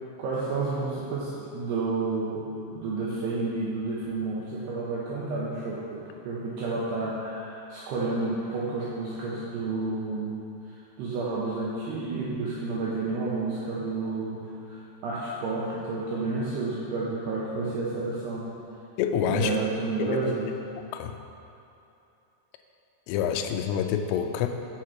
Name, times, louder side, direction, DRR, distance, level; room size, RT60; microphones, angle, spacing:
voice 1, 0.2-10.4 10.7-18.5 19.3-20.5, right 3 dB, 80° right, -6 dB, 2.4 m, -30 dB
voice 2, 19.0-19.6 20.0-20.3 20.9-21.2 23.1-24.5, left 8 dB, 90° left, 6 dB, 3.2 m, -27 dB
7.1 x 6.5 x 5.8 m, 2.8 s
omnidirectional pair, 5.7 m